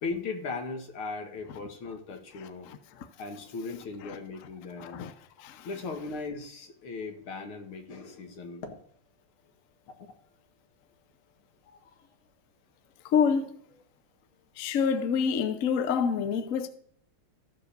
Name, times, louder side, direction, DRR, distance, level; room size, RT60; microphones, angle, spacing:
voice 1, 0.0-2.7 3.2-5.1 5.6-8.8 10.0-10.1 11.7-11.9, left 4 dB, 75° left, 2.4 m, -38 dB
voice 2, 4.8-5.1 5.4-5.7 13.1-13.5 14.6-16.7, left 6 dB, 60° left, 0.9 m, -27 dB
13.5 x 4.8 x 6.7 m
omnidirectional pair, 2.3 m